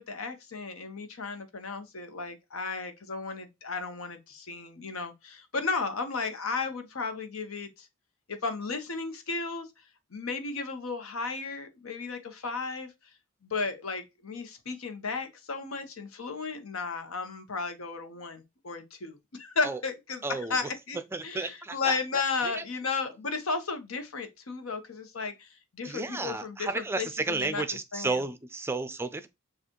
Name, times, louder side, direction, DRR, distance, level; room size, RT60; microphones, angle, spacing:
voice 1, 0.0-7.9 8.3-9.7 10.1-12.9 13.4-20.2 20.5-21.0 21.2-25.5 25.8-27.6 27.9-28.2, left 4 dB, 80° left, 1.0 m, -34 dB
voice 2, 20.2-20.7 21.1-22.6 25.8-29.3, right 3 dB, 10° right, 0.4 m, -33 dB
6.6 x 2.5 x 2.9 m
head